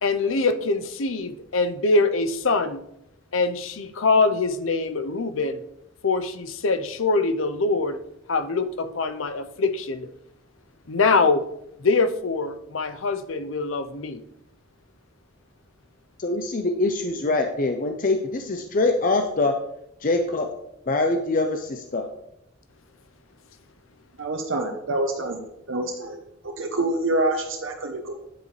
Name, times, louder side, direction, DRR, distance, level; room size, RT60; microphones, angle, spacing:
voice 1, 0.0-2.8 3.3-5.6 6.0-8.0 8.3-10.1 10.9-11.4 11.8-14.2, left 3 dB, 80° left, 10 dB, 0.7 m, -23 dB
voice 2, 16.2-19.6 20.0-20.5 20.9-22.0, left 2 dB, 40° left, 5 dB, 0.6 m, -24 dB
voice 3, 24.2-25.4 25.7-26.2 26.4-28.1, right 2 dB, 75° right, 3 dB, 0.9 m, -26 dB
9.6 x 8.1 x 3.2 m, 0.79 s
head